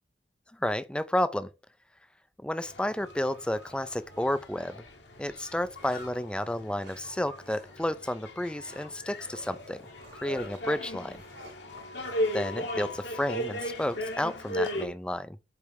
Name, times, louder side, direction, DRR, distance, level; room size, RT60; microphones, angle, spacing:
voice 1, 0.6-1.5 2.4-4.8 5.2-9.8 10.2-11.2 12.3-15.4, left 1 dB, 5° left, 0.4 m, -31 dB
sound 1, 2.6-14.9, left 1 dB, 75° left, 1.7 m, -37 dB
sound 2, 4.1-4.4 5.1-6.3 6.8-7.1 7.4-7.7 8.0-8.1 8.6-8.9 9.3-14.7, right 2 dB, 75° right, 2.3 m, -56 dB
8.4 x 3.3 x 4.7 m
head